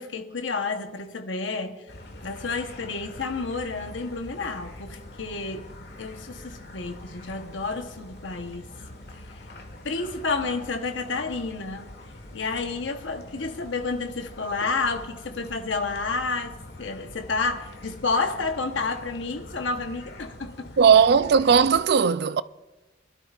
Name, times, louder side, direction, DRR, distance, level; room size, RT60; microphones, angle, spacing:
voice 1, 0.0-1.8 2.2-5.7 6.0-8.7 9.1-9.5 9.8-11.9 12.3-20.7, left 4 dB, 85° left, 1.1 m, -30 dB
sound 1, 1.9-21.8, left 1 dB, 60° left, 1.5 m, -44 dB
voice 2, 20.8-22.4, right 6 dB, 60° right, 0.4 m, -17 dB
25.0 x 12.0 x 2.5 m
head